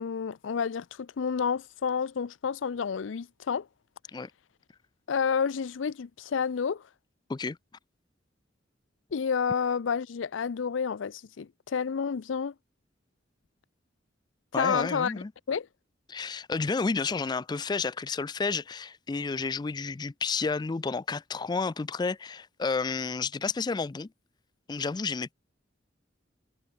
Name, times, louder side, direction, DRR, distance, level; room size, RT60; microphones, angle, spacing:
voice 1, 0.0-3.7 5.1-6.8 9.1-12.5 14.5-15.7, left 6 dB, 90° left, 0.5 m, -30 dB
voice 2, 14.5-15.3 16.1-24.1 24.7-25.3, left 4 dB, 20° left, 0.3 m, -31 dB
head